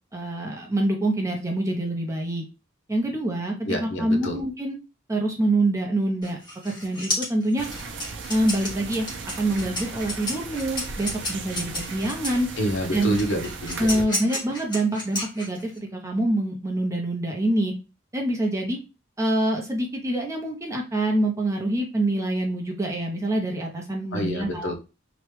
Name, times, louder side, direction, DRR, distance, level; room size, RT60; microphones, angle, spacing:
voice 1, 0.1-2.4 2.9-4.8 5.1-6.4 6.6-7.7 8.3-9.1 9.4-12.5 12.9-13.2 13.8-17.7 18.1-18.8 19.2-24.7, right 1 dB, 15° right, 0 dB, 0.6 m, -25 dB
voice 2, 3.7-4.4 12.6-14.0 24.1-24.7, equal, 70° left, 2 dB, 0.7 m, -28 dB
sound 1, 6.2-12.5 13.2-15.8, left 1 dB, 25° left, 1.1 m, -32 dB
sound 2, 7.6-14.0, right 4 dB, 65° right, 0.5 m, -37 dB
3.0 x 2.2 x 3.1 m, 0.30 s
head